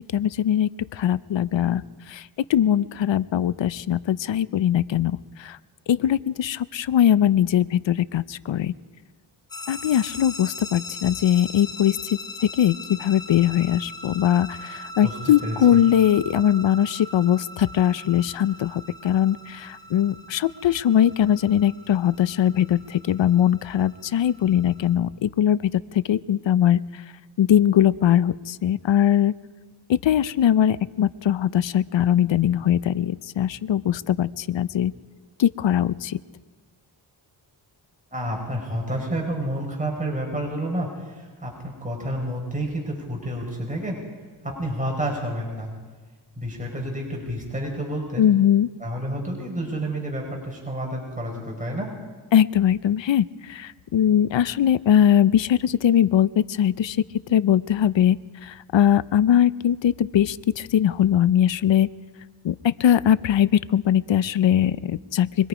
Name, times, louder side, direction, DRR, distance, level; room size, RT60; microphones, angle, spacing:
voice 1, 0.1-1.8 2.1-2.2 2.5-5.6 5.9-8.7 9.7-12.0 12.6-25.6 25.9-26.8 27.4-29.3 29.9-34.9 35.4-36.2 48.2-48.7 52.3-57.0 57.3-58.2 58.4-61.9 62.4-65.5, left 10 dB, 65° left, 17 dB, 0.7 m, -21 dB
sound 1, 9.5-24.9, left 2 dB, 45° left, 3.8 m, -40 dB
voice 2, 15.4-15.8 38.1-44.0 44.6-45.7 46.4-48.3 48.8-51.9, right 1 dB, 15° right, -1 dB, 5.3 m, -29 dB
25.0 x 22.0 x 5.0 m, 1.4 s
cardioid pair, 50°, 47 cm